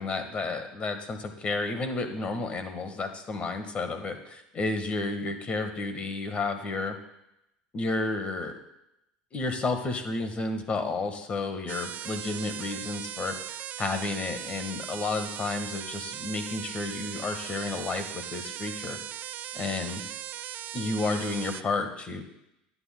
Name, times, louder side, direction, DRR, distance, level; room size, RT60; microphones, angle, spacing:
voice 1, 0.0-7.0 7.7-8.6 9.3-13.3 13.8-19.0 19.5-20.0 20.7-22.2, left 3 dB, 35° left, 7 dB, 1.5 m, -31 dB
sound 1, 11.7-21.6, right 11 dB, 50° right, 0.4 m, -38 dB
13.5 x 9.7 x 2.2 m, 0.84 s
supercardioid pair, 95°, 4 cm